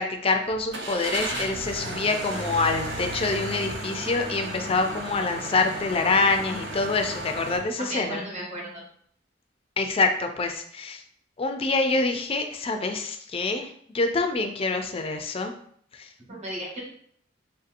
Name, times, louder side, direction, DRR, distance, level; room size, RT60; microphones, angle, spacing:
voice 1, 0.0-8.3 9.8-11.0 11.4-15.5 15.9-16.1, left 3 dB, 30° left, 6 dB, 0.4 m, -26 dB
Car / Engine starting, 0.7-7.6, right 1 dB, 60° right, 0.7 m, -34 dB
voice 2, 7.8-8.8 16.3-16.8, right 1 dB, 35° right, -2 dB, 1.1 m, -34 dB
4.4 x 2.7 x 2.5 m, 0.63 s
head